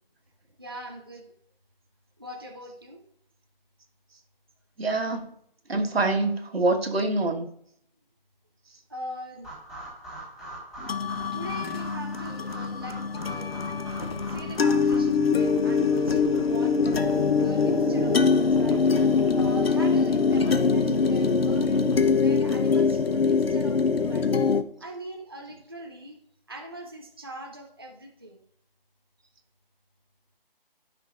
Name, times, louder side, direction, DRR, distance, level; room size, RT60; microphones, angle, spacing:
voice 1, 0.6-1.3 2.2-3.0 8.9-9.5 11.2-13.7 14.2-18.8 19.3-21.8 22.2-24.3 24.8-26.2 26.5-28.4, right 1 dB, 25° right, 2 dB, 0.5 m, -42 dB
voice 2, 4.8-5.3 5.7-7.5, right 2 dB, 85° right, 3 dB, 1.6 m, -25 dB
sound 1, 9.4-15.0, right 1 dB, 10° left, 2.6 m, -42 dB
sound 2, 10.8-24.6, left 5 dB, 85° left, 0.8 m, -23 dB
sound 3, 13.9-22.1, left 1 dB, 30° left, 0.6 m, -41 dB
12.0 x 5.9 x 2.5 m, 0.70 s
figure-of-eight pair, 170°, 30 cm